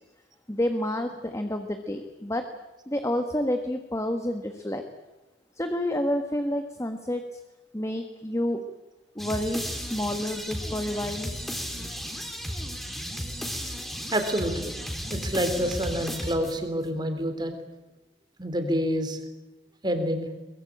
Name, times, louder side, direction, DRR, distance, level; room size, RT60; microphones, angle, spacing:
voice 1, 0.5-2.5 2.9-4.8 5.6-7.4 7.7-8.6 9.1-11.3, left 1 dB, 15° left, 6 dB, 1.5 m, -29 dB
sound 1, 9.2-16.8, equal, ahead, 3.6 m, -34 dB
voice 2, 14.1-14.8 15.1-17.5 18.4-19.2 19.8-20.3, equal, 25° right, 7 dB, 3.4 m, -27 dB
22.5 x 22.0 x 8.8 m, 1.0 s
head